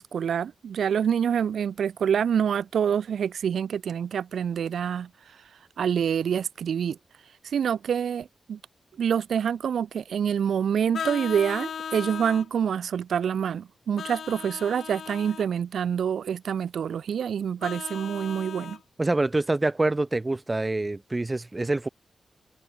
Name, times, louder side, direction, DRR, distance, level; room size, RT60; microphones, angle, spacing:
voice 1, 0.0-5.1 5.8-7.0 7.4-8.6 9.0-18.8, right 8 dB, 85° right, 2.0 m, -26 dB
Vehicle horn car horn honking, 10.9-12.5 14.0-15.5 17.6-18.8, left 7 dB, 75° left, 2.5 m, -37 dB
voice 2, 19.0-21.9, right 2 dB, 20° right, 4.0 m, -26 dB
wide cardioid pair, 145°, 0 cm